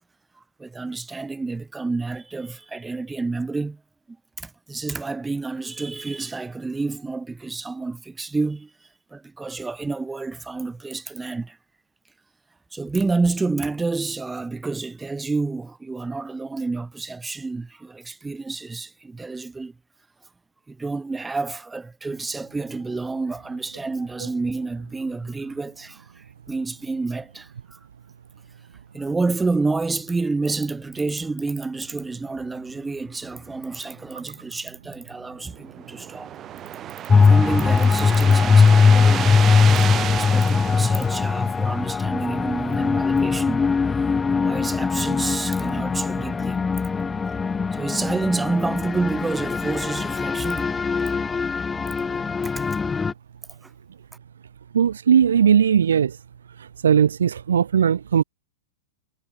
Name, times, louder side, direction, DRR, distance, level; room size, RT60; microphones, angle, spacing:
voice 1, 0.6-3.8 4.4-8.7 9.1-11.6 12.7-19.8 20.7-27.8 28.9-36.4 37.1-39.4 40.1-43.7 44.3-46.6 47.7-50.7 52.4-52.7, right 3 dB, 10° right, 5.3 m, -29 dB
sound 1, 35.4-41.9, right 11 dB, 30° right, 0.6 m, -31 dB
sound 2, 37.1-53.1, left 5 dB, 15° left, 0.5 m, -20 dB
voice 2, 54.7-56.1 56.8-58.2, right 8 dB, 80° right, 0.5 m, -18 dB
hypercardioid pair, 105°, 0 cm